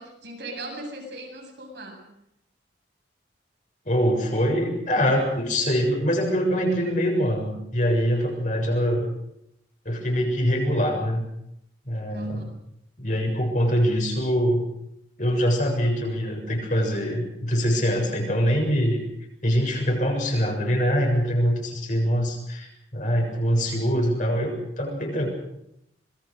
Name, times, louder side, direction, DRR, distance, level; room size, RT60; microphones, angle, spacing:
voice 1, 0.0-2.0 12.1-12.4, right 2 dB, 65° right, 1 dB, 7.8 m, -38 dB
voice 2, 3.9-9.0 9.9-11.3 11.9-12.5 13.0-14.6 15.2-19.1 19.4-25.3, equal, 40° left, 1 dB, 7.2 m, -24 dB
26.5 x 22.0 x 6.6 m, 0.79 s
head